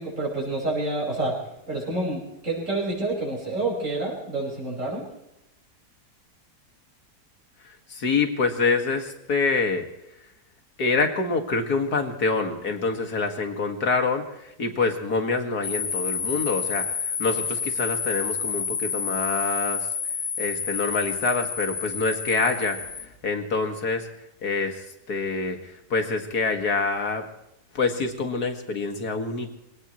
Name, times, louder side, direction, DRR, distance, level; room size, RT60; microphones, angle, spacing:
voice 1, 0.0-1.4 1.7-5.0, right 2 dB, 50° right, -4 dB, 6.1 m, -28 dB
voice 2, 7.6-9.9 10.2-10.3 10.8-20.0 20.4-24.1 24.4-27.3 27.7-29.5, left 4 dB, 70° left, 5 dB, 2.6 m, -26 dB
sound 1, 15.6-23.1, left 6 dB, 40° left, 0.9 m, -29 dB
25.0 x 18.0 x 3.2 m, 0.86 s
omnidirectional pair, 1.7 m